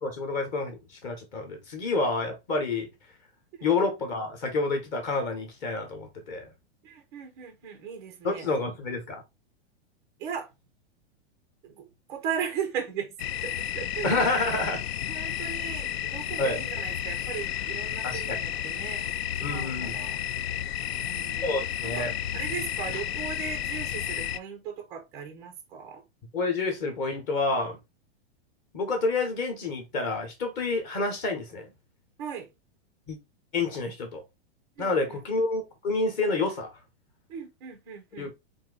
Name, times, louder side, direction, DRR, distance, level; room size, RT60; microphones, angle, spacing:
voice 1, 0.0-2.9 3.6-6.5 8.2-9.2 14.0-14.8 16.4-16.6 18.0-18.4 19.4-20.0 21.4-22.1 26.3-27.8 28.7-31.7 33.1-33.2 33.5-34.2 34.8-36.7 38.2-38.3, left 3 dB, 25° left, 1.0 m, -28 dB
voice 2, 6.8-8.5 10.2-10.5 11.6-13.1 13.4-14.4 15.1-19.1 19.4-20.2 21.0-21.5 21.8-26.0 32.2-32.5 34.8-35.2 37.3-38.3, right 8 dB, 10° right, 0.4 m, -37 dB
sound 1, 13.2-24.4, left 10 dB, 65° left, 0.5 m, -32 dB
4.3 x 2.7 x 3.7 m
supercardioid pair, 170°, 33 cm